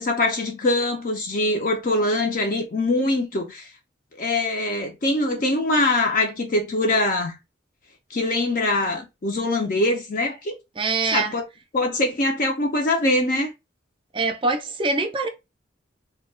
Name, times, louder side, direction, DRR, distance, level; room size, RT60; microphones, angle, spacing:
voice 1, 0.0-3.7 4.2-7.4 8.1-10.5 11.1-11.4 11.7-13.5, left 2 dB, 45° left, 0.5 m, -23 dB
voice 2, 10.8-11.4 14.1-15.3, right 3 dB, 25° right, 0.4 m, -24 dB
2.2 x 2.1 x 3.2 m
head